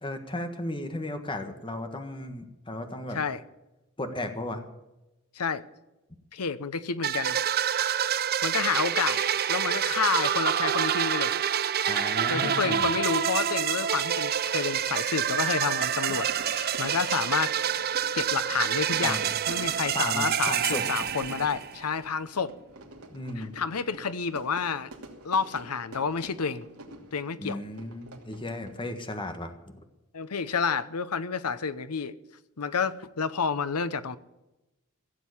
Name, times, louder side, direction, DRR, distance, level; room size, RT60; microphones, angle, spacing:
voice 1, 0.0-3.2 4.0-4.6 11.8-12.9 19.0-19.3 19.9-20.8 23.1-23.5 27.4-29.8, left 1 dB, 20° left, 1.5 m, -35 dB
voice 2, 6.3-7.4 8.4-9.2 9.5-11.3 12.3-17.8 18.1-22.5 23.4-24.9 25.2-26.7 27.1-27.6 30.1-32.1 32.6-34.2, left 5 dB, 80° left, 0.8 m, -30 dB
sound 1, 7.0-21.8, right 9 dB, 45° right, 0.6 m, -27 dB
Fire / Fireworks, 14.9-29.0, right 1 dB, 70° right, 2.8 m, -47 dB
16.0 x 7.6 x 9.9 m
head